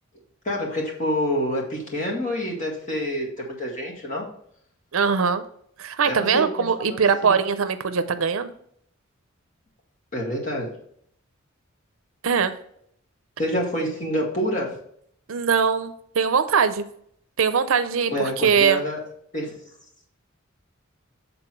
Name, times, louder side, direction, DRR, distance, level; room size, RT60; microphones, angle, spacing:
voice 1, 0.4-4.3 6.0-6.4 6.9-7.4 10.1-10.7 13.4-14.7 18.1-19.0 19.3-19.5, equal, 35° left, -3 dB, 1.9 m, -27 dB
voice 2, 4.9-5.4 5.8-8.5 12.2-12.5 15.3-16.8 17.4-18.8, right 6 dB, 70° right, 11 dB, 0.5 m, -21 dB
7.9 x 3.8 x 4.5 m, 0.67 s
head